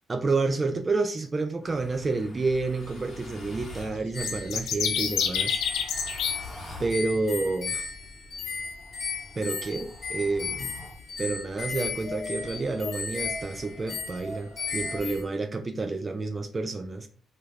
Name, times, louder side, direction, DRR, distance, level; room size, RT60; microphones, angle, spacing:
voice 1, 0.1-5.6 6.0-6.1 6.8-7.9 9.4-10.7 11.2-17.1, right 3 dB, 30° right, 0.3 m, -29 dB
sound 1, 1.6-4.0 5.0-7.0 8.6-11.0 11.7-15.1, left 2 dB, 15° left, 1.0 m, -44 dB
sound 2, 4.1-15.2, left 5 dB, 45° left, 0.7 m, -35 dB
sound 3, 4.2-6.3, left 7 dB, 85° left, 0.4 m, -28 dB
3.1 x 2.4 x 3.2 m
cardioid pair, 90°, 0 cm